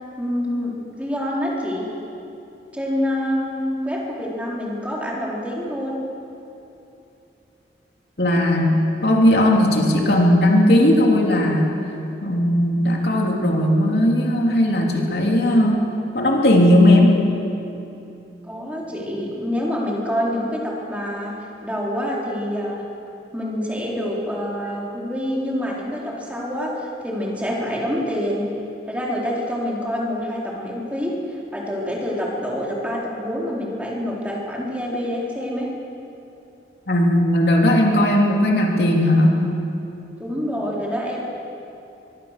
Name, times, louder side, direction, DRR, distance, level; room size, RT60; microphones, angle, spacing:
voice 1, 0.2-1.9 2.7-6.0 18.5-22.8 23.3-28.4 28.9-35.7 40.2-41.2, equal, 10° right, -4 dB, 4.0 m, -26 dB
voice 2, 8.2-11.7 12.2-15.8 16.1-17.2 36.9-39.4, left 1 dB, 65° left, -1 dB, 3.2 m, -17 dB
23.5 x 23.0 x 6.7 m, 2.8 s
head